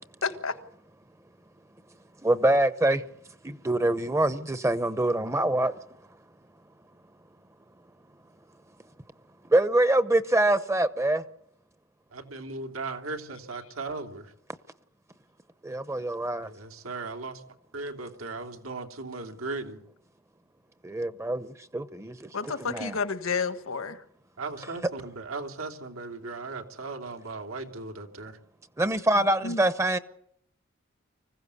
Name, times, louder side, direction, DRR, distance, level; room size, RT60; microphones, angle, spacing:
voice 1, 0.2-0.6 22.3-24.0 29.4-29.6, left 5 dB, 80° left, 1.5 m, -30 dB
voice 2, 2.2-3.0 3.4-5.8 9.5-11.2 15.6-16.5 20.8-23.0 24.6-24.7 28.8-30.0, right 1 dB, 15° right, 0.8 m, -25 dB
voice 3, 12.1-14.3 16.4-17.4 17.7-19.8 24.4-28.4, right 3 dB, 90° right, 2.9 m, -37 dB
25.0 x 16.0 x 8.3 m
head